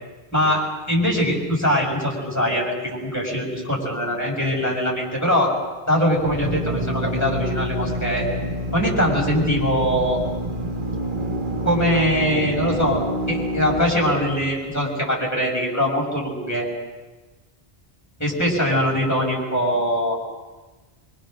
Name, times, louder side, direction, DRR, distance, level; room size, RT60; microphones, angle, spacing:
voice 1, 0.3-5.5 5.9-8.3 8.7-10.2 11.6-16.7 18.2-20.2, equal, 15° left, -3 dB, 6.4 m, -22 dB
Drill, 6.2-14.8, right 1 dB, 50° right, 1.6 m, -27 dB
25.0 x 25.0 x 6.5 m, 1.2 s
omnidirectional pair, 1.1 m